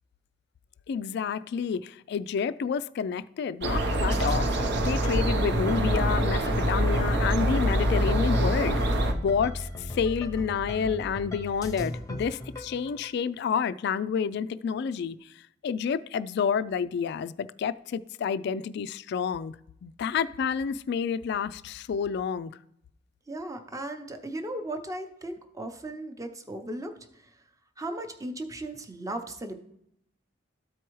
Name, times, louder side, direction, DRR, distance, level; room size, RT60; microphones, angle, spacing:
voice 1, 0.9-15.3 15.6-19.6 19.8-22.5, left 6 dB, 60° left, 0.3 m, -29 dB
sound 1, 3.6-13.1, left 1 dB, 20° left, 0.6 m, -34 dB
sound 2, 3.6-9.1, right 1 dB, 60° right, 0.7 m, -25 dB
voice 2, 23.3-27.3 27.8-29.5, right 1 dB, 20° right, 0.7 m, -36 dB
13.0 x 4.6 x 3.1 m
head